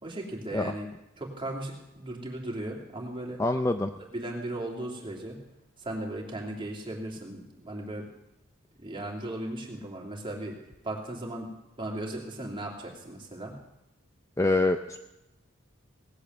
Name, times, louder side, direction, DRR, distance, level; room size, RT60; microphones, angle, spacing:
voice 1, 0.0-0.9 1.2-3.4 4.1-5.4 5.8-8.1 8.8-10.6 10.8-13.6, right 1 dB, 25° right, -1 dB, 2.8 m, -37 dB
voice 2, 3.4-3.9 14.4-15.0, left 2 dB, 15° left, 7 dB, 0.5 m, -25 dB
18.5 x 8.5 x 7.9 m, 0.93 s
head